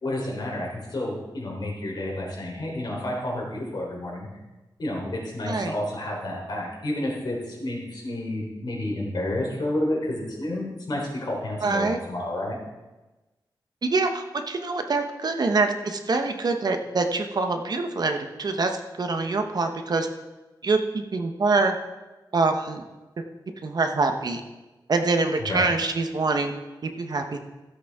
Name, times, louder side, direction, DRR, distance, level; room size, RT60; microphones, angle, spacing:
voice 1, 0.0-4.3 4.8-12.6 25.5-25.6, left 1 dB, 60° left, -3 dB, 3.7 m, -30 dB
voice 2, 11.6-12.0 13.8-20.1 20.6-21.7 22.3-22.8 23.6-24.4 24.9-26.5 26.8-27.4, right 3 dB, 55° right, 6 dB, 1.0 m, -25 dB
15.5 x 8.0 x 3.6 m, 1.1 s
wide cardioid pair, 125°, 8 cm